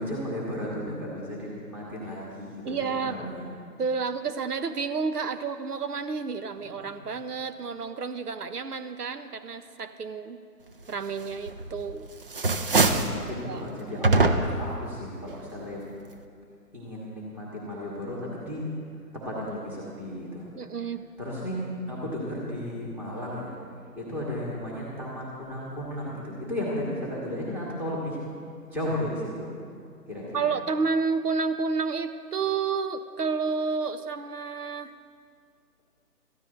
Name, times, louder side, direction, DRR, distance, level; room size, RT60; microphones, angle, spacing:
voice 1, 0.0-3.5 6.8-6.9 12.9-15.8 16.7-18.7 19.1-20.5 21.2-21.6 21.9-23.5 24.0-28.2 28.7-29.5 30.1-30.5, left 1 dB, 5° right, -5 dB, 1.2 m, -34 dB
voice 2, 2.6-3.3 3.8-10.4 10.9-12.1 13.4-13.6 20.6-21.0 30.3-34.9, right 5 dB, 75° right, 10 dB, 1.0 m, -30 dB
sound 1, 11.5-11.9 12.2-13.2 14.0-14.7, right 3 dB, 35° right, 0.6 m, -22 dB
25.5 x 14.0 x 2.6 m, 2.2 s
hypercardioid pair, 155°, 48 cm